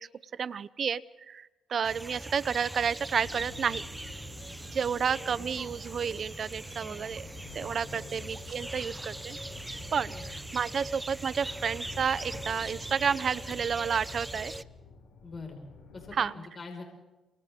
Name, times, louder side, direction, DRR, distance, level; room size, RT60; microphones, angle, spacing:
voice 1, 0.0-3.8 4.7-7.2 7.5-9.4 9.9-14.5 16.2-16.3, right 7 dB, 50° right, 18 dB, 0.8 m, -31 dB
sound 1, 1.8-14.6, right 1 dB, 10° right, 0.7 m, -41 dB
sound 2, 3.1-16.2, left 4 dB, 70° left, 6.8 m, -49 dB
voice 2, 6.8-7.3 7.9-8.3 10.1-10.4 15.2-15.6 15.9-16.8, left 4 dB, 35° left, 2 dB, 5.5 m, -45 dB
29.0 x 27.0 x 3.8 m, 1.1 s
cardioid pair, 90°, 0 cm